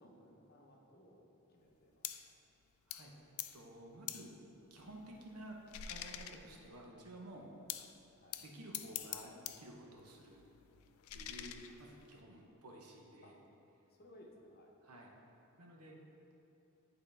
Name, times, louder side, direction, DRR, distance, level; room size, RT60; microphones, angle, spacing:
voice 1, 0.0-2.4 8.1-8.4 13.2-13.3 13.9-14.7, left 1 dB, 45° left, -1 dB, 0.8 m, -61 dB
sound 1, 2.0-2.3 2.9-3.1 3.4-3.6 4.1-4.3 4.8-6.8 7.7-8.0 8.3-9.7 10.0-12.2, left 11 dB, 70° left, 0.3 m, -46 dB
voice 2, 3.5-4.3 4.7-5.6 5.9-7.8 8.4-10.4 11.1-13.4 14.8-15.1 15.6-16.0, right 1 dB, 90° right, 0 dB, 0.9 m, -53 dB
9.8 x 4.0 x 3.3 m, 2.8 s
head